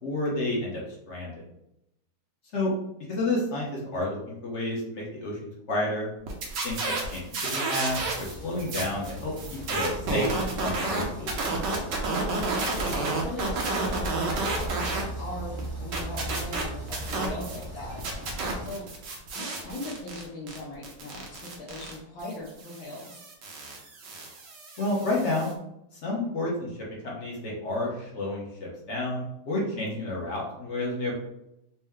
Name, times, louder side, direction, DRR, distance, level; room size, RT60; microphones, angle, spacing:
voice 1, 0.0-1.3 2.5-2.7 3.1-5.4 5.7-6.1 6.6-7.2 7.5-9.3 9.7-10.3 10.6-11.3 24.8-25.5 26.0-26.7 27.0-31.1, left 2 dB, 45° left, -3 dB, 0.9 m, -30 dB
sound 1, 6.3-8.3 8.6-15.0 15.4-17.7 18.0-25.5, right 3 dB, 65° right, 1.3 m, -31 dB
sound 2, 7.8-18.7, right 1 dB, 35° right, 0.4 m, -40 dB
voice 2, 12.1-12.4 13.1-14.8 15.2-18.9 19.3-23.2 29.5-29.7, left 1 dB, 75° left, -4 dB, 1.6 m, -39 dB
4.3 x 2.2 x 3.5 m, 0.83 s
omnidirectional pair, 2.3 m